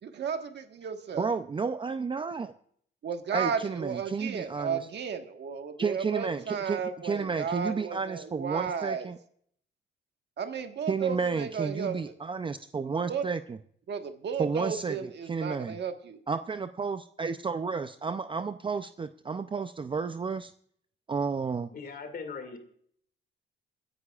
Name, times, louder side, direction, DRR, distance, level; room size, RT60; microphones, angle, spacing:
voice 1, 0.0-1.3 3.0-9.1 10.4-12.0 13.1-13.2 13.9-16.2, right 6 dB, 60° right, 6 dB, 1.4 m, -34 dB
voice 2, 1.2-2.5 3.3-4.8 5.8-9.2 10.9-13.6 14.4-15.0 15.3-15.7 16.3-20.5 21.1-21.7, right 5 dB, 25° right, 10 dB, 0.5 m, -31 dB
voice 3, 21.7-22.6, left 5 dB, 50° left, 7 dB, 2.3 m, -39 dB
28.5 x 9.9 x 2.4 m, 0.63 s
cardioid pair, 90°, 20 cm